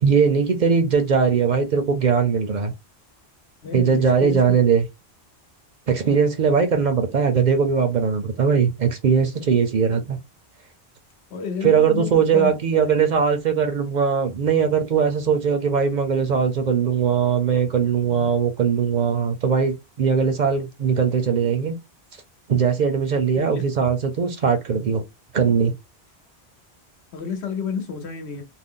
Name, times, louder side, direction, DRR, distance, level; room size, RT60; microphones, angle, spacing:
voice 1, 0.0-2.7 3.7-4.8 5.9-10.2 11.6-21.7 22.5-25.0 25.3-25.7, right 6 dB, 55° right, 0.6 m, -20 dB
voice 2, 3.6-4.6 11.3-13.0 23.3-23.7 27.1-28.4, left 6 dB, 85° left, 1.1 m, -31 dB
2.5 x 2.1 x 3.6 m
omnidirectional pair, 1.1 m